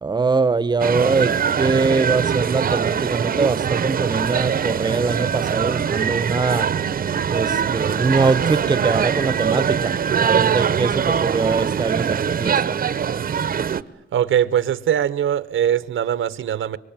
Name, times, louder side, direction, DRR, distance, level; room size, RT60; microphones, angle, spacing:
voice 1, 0.0-6.7 7.3-12.8, right 4 dB, 20° right, 0.9 m, -22 dB
sound 1, 0.8-13.8, right 7 dB, 45° right, 0.9 m, -22 dB
voice 2, 14.1-16.8, right 10 dB, 75° right, 1.0 m, -21 dB
25.0 x 23.5 x 8.9 m
wide cardioid pair, 155°, 21 cm